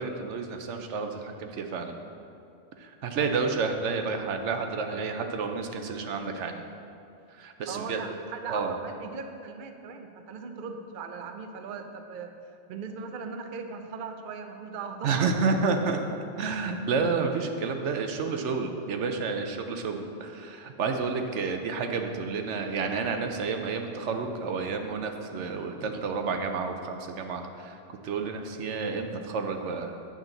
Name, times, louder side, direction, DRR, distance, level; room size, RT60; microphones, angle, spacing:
voice 1, 0.0-2.0 2.8-6.6 7.3-8.0 8.5-8.7 15.0-16.0 16.4-30.0, right 4 dB, 80° right, 5 dB, 1.0 m, -30 dB
voice 2, 7.7-12.3 12.7-15.3, right 5 dB, 55° right, 5 dB, 0.7 m, -38 dB
8.8 x 7.2 x 3.9 m, 2.6 s
omnidirectional pair, 1.2 m